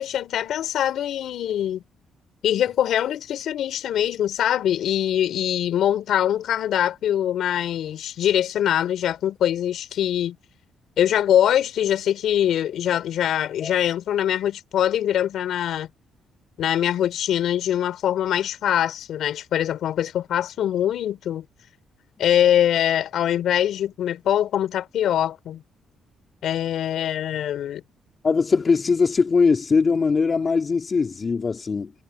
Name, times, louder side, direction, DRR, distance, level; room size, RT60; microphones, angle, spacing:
voice 1, 0.0-1.8 2.4-10.4 11.0-15.9 16.6-21.5 22.2-25.6 26.4-27.8, left 10 dB, 75° left, 4.1 m, -23 dB
voice 2, 28.2-31.9, left 5 dB, 35° left, 2.8 m, -21 dB
cardioid pair, 90°, 0 cm